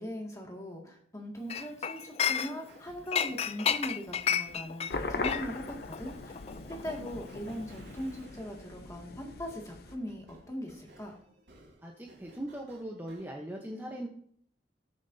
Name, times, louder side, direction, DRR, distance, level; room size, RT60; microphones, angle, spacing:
voice 1, 0.0-6.3 6.7-11.2, equal, 15° left, 0 dB, 2.1 m, -40 dB
Chink clink, 1.5-2.8 3.1-7.7 8.0-8.2, left 8 dB, 35° left, 0.4 m, -32 dB
sound 1, 2.6-13.3, right 1 dB, 85° right, 4.2 m, -59 dB
sound 2, 4.9-9.9, left 3 dB, 55° left, 0.8 m, -40 dB
voice 2, 11.8-14.1, right 1 dB, 10° right, 0 dB, 0.9 m, -40 dB
19.0 x 7.1 x 2.7 m, 0.63 s
head